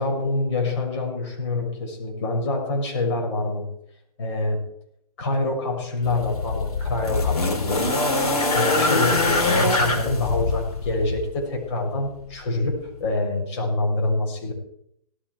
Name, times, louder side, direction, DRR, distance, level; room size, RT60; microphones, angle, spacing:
voice 1, 0.0-3.7 4.2-4.6 5.2-8.0 8.5-14.5, left 2 dB, 50° left, 2 dB, 6.3 m, -26 dB
sound 1, 6.0-11.3 12.3-12.4, left 2 dB, 80° left, 3.8 m, -23 dB
17.5 x 13.5 x 4.6 m, 0.73 s
hypercardioid pair, 130°, 19 cm